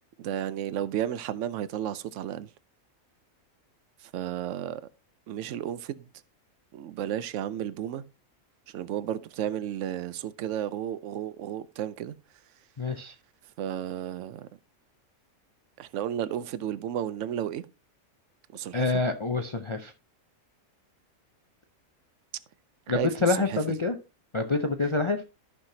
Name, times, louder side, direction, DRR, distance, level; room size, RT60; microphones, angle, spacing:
voice 1, 0.2-2.5 4.0-4.8 5.3-6.1 6.7-8.0 8.7-12.1 13.6-14.5 15.8-17.6 18.5-18.9 22.9-23.6, right 10 dB, 70° right, 0.9 m, -33 dB
voice 2, 12.8-13.1 18.7-19.9 22.9-23.9 24.3-25.2, left 3 dB, 55° left, 0.3 m, -27 dB
13.5 x 5.8 x 2.7 m
omnidirectional pair, 1.5 m